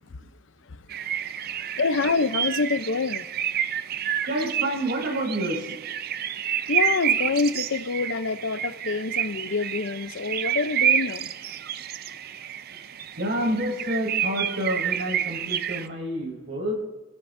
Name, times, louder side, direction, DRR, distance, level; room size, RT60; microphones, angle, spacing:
sound 1, 0.9-15.9, right 9 dB, 50° right, 0.5 m, -29 dB
voice 1, 1.8-3.2 6.7-11.3, left 4 dB, 75° left, 0.7 m, -26 dB
voice 2, 4.3-5.8 13.2-16.9, right 1 dB, 80° right, 4.7 m, -28 dB
29.0 x 16.0 x 2.6 m
head